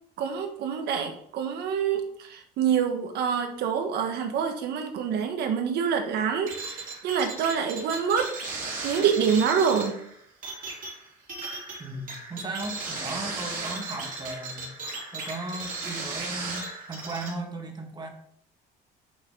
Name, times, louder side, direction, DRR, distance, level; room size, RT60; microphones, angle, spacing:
voice 1, 0.2-8.3 8.8-9.9, right 7 dB, 75° right, 5 dB, 1.6 m, -26 dB
sound 1, 6.5-17.3, right 3 dB, 50° right, 2.9 m, -36 dB
voice 2, 11.8-14.7 15.1-18.1, right 2 dB, 25° right, 2 dB, 1.9 m, -36 dB
8.3 x 6.8 x 3.9 m, 0.68 s
cardioid pair, 110°, 17 cm